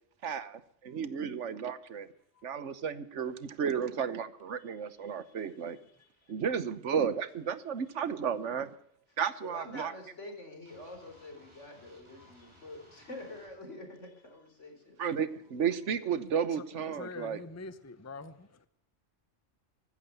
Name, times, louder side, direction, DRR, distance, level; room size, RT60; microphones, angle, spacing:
voice 1, 0.2-2.1 2.4-5.8 6.3-8.7 9.2-9.9 15.0-17.4, right 7 dB, 75° right, 15 dB, 1.3 m, -33 dB
voice 2, 9.4-15.0, left 2 dB, 75° left, 5 dB, 4.4 m, -46 dB
sound 1, 10.7-13.5, right 1 dB, 25° right, 5.1 m, -60 dB
voice 3, 12.2-12.5 16.6-16.7 17.0-18.7, left 3 dB, 15° left, 13 dB, 0.8 m, -45 dB
15.0 x 13.5 x 6.8 m, 0.70 s
omnidirectional pair, 1.2 m